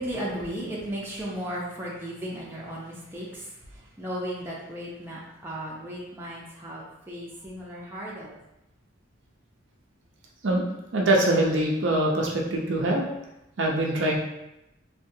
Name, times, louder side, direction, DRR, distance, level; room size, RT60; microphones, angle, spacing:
voice 1, 0.0-8.4, equal, 10° right, -6 dB, 0.6 m, -35 dB
voice 2, 10.9-13.1 13.6-14.2, right 1 dB, 65° right, -1 dB, 0.6 m, -23 dB
3.6 x 2.4 x 2.7 m, 0.88 s
head